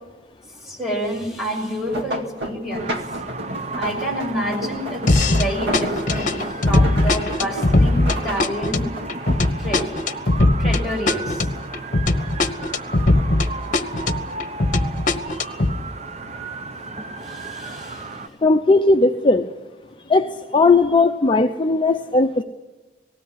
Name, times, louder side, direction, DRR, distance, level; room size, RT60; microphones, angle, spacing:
voice 1, 0.6-2.9 3.8-8.9 9.6-10.1 10.6-11.5 15.3-15.7 17.2-18.3 20.0-20.1, equal, ahead, -2 dB, 6.5 m, -29 dB
sound 1, 1.6-11.2 11.5-12.5 12.9-14.2 15.0-15.3 15.7-15.8, equal, 85° right, 2.1 m, -32 dB
sound 2, 2.8-18.3, right 3 dB, 40° right, 0.9 m, -35 dB
sound 3, 5.1-5.5 5.7-13.5 13.7-15.7, left 2 dB, 50° left, 1.3 m, -19 dB
voice 2, 18.4-19.5 20.1-22.4, left 3 dB, 30° left, 6 dB, 0.7 m, -17 dB
19.0 x 16.5 x 9.7 m, 1.1 s
head